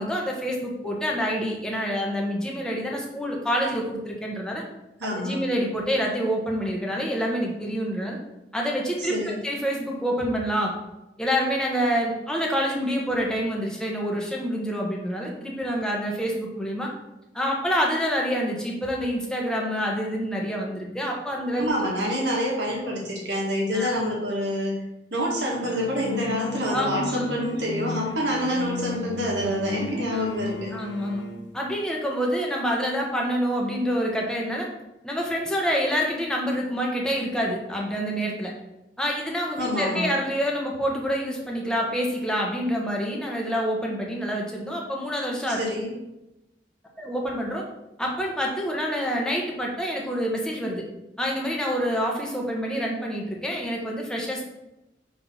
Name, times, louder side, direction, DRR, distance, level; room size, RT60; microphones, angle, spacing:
voice 1, 0.0-4.6 5.1-8.2 8.5-10.7 11.2-16.9 17.3-21.7 23.7-23.9 26.7-27.4 30.1-30.2 30.7-31.2 31.5-34.7 35.0-38.5 39.0-45.6 47.0-47.6 48.0-50.8 51.2-54.4, equal, 5° left, -2 dB, 1.1 m, -27 dB
voice 2, 5.0-5.4 9.0-9.4 21.6-24.8 25.1-30.7 39.6-40.1 45.5-45.9, equal, 75° right, -3 dB, 1.8 m, -27 dB
sound 1, 25.6-31.5, left 2 dB, 85° left, 0.8 m, -34 dB
5.5 x 3.3 x 5.6 m, 0.94 s
head